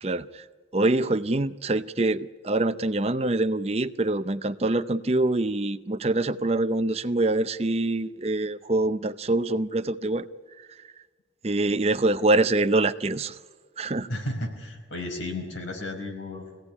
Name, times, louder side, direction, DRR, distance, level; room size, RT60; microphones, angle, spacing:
voice 1, 0.0-0.4 0.7-10.3 10.6-10.7 11.4-13.4 13.8-14.1, right 2 dB, 35° right, 12 dB, 0.6 m, -25 dB
voice 2, 14.1-16.6, left 1 dB, 90° left, 3 dB, 5.0 m, -33 dB
23.5 x 16.5 x 9.8 m, 1.5 s
head